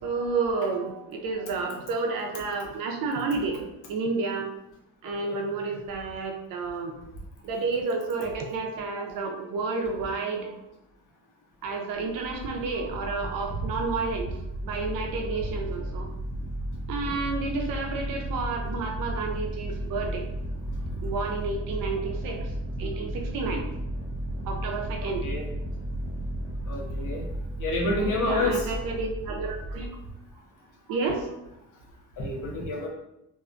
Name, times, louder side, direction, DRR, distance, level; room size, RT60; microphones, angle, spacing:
voice 1, 0.0-3.6 3.9-4.5 5.0-6.9 7.4-10.5 11.6-14.4 14.6-16.1 16.9-20.2 21.0-22.5 22.8-23.6 24.5-25.2 27.8-29.9 30.9-31.3, right 4 dB, 75° right, 2 dB, 0.6 m, -30 dB
sound 1, 11.9-29.9, equal, 30° right, 0.4 m, -34 dB
voice 2, 25.0-25.4 26.7-27.2 27.6-28.7 32.2-32.9, left 2 dB, 65° left, -1 dB, 0.8 m, -29 dB
2.6 x 2.2 x 2.5 m, 0.85 s
cardioid pair, 110°, 34 cm